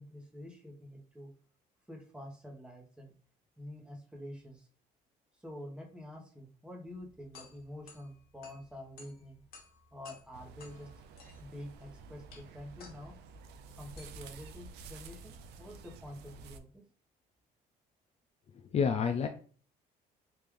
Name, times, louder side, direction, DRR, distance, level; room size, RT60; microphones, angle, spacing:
voice 1, 0.0-1.3 1.9-3.1 3.6-4.7 5.3-9.4 9.9-10.9 11.4-13.2 13.7-16.8, left 1 dB, 5° right, 0 dB, 1.0 m, -47 dB
sound 1, 6.9-16.0, left 4 dB, 65° left, 1.1 m, -58 dB
sound 2, 10.3-16.6, right 4 dB, 80° right, 0.4 m, -51 dB
voice 2, 18.5-19.3, left 6 dB, 40° left, 6 dB, 0.4 m, -29 dB
3.2 x 2.6 x 3.4 m, 0.44 s
cardioid pair, 110°, 17 cm